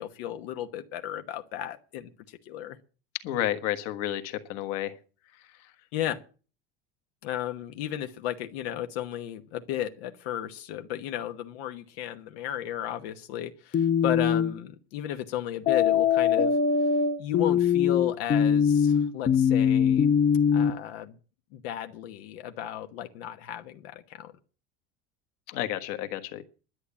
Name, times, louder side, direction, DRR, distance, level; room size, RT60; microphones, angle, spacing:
voice 1, 0.0-2.8 5.9-6.2 7.2-16.6 17.2-20.1 20.5-21.2 21.5-24.3, left 11 dB, 90° left, 1.2 m, -34 dB
voice 2, 3.2-4.9 25.5-26.4, left 13 dB, 60° left, 1.5 m, -31 dB
sound 1, 13.7-14.5 15.7-20.7, left 7 dB, 25° left, 0.6 m, -22 dB
11.5 x 8.6 x 8.4 m
cardioid pair, 155°, 30 cm